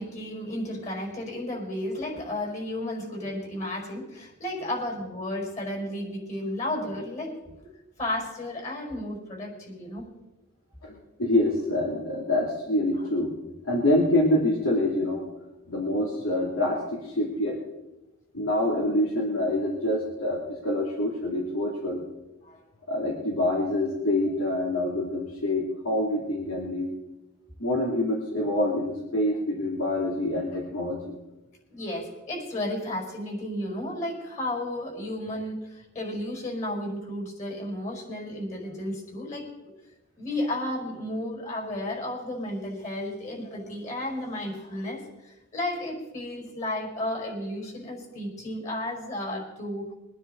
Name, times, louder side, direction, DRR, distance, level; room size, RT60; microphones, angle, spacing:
voice 1, 0.0-7.4 8.0-10.1 13.0-13.1 22.4-22.6 31.7-39.7 40.2-49.8, left 1 dB, 35° left, -1 dB, 5.3 m, -33 dB
voice 2, 11.2-13.3 13.6-15.2 15.7-17.6 18.3-22.0 22.9-26.9 27.6-31.1, left 1 dB, 85° left, -2 dB, 2.7 m, -26 dB
23.0 x 10.0 x 3.9 m, 1.0 s
head